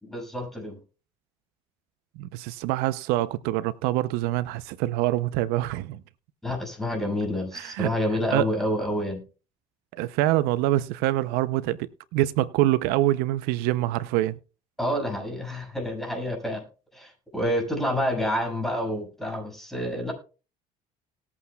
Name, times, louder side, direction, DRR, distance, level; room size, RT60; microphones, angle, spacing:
voice 1, 0.1-0.8 6.4-9.2 14.8-16.6 16.9-20.1, equal, ahead, 6.1 m, -28 dB
voice 2, 2.2-6.0 7.5-7.9 8.3-8.5 10.0-14.4, right 15 dB, 80° right, 0.6 m, -25 dB
19.5 x 8.5 x 2.3 m
supercardioid pair, 90°, 16 cm